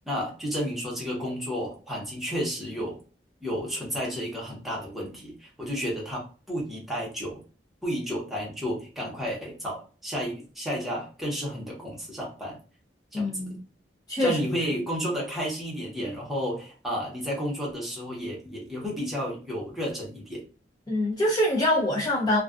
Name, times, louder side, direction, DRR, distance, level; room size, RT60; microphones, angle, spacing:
voice 1, 0.1-3.0 3.4-7.4 7.8-12.6 13.1-13.6 14.2-20.5, equal, ahead, 0.8 m, -32 dB
voice 2, 13.1-13.6 14.1-14.4 20.9-22.4, left 1 dB, 20° left, 0.4 m, -24 dB
2.3 x 2.2 x 2.4 m
head